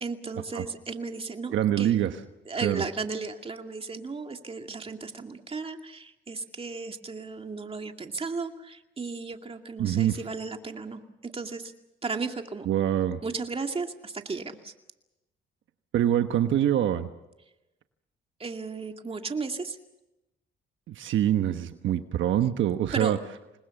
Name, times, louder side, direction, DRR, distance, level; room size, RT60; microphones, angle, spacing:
voice 1, 0.0-2.0 2.5-11.7 12.0-12.7 13.2-14.7 18.4-19.8 22.9-23.2, right 4 dB, 30° right, 5 dB, 2.3 m, -35 dB
voice 2, 1.5-2.1 2.6-2.8 9.8-10.2 12.7-13.2 15.9-17.1 20.9-23.2, right 11 dB, 75° right, 8 dB, 1.2 m, -25 dB
27.0 x 21.0 x 7.1 m, 0.96 s
cardioid pair, 90°, 20 cm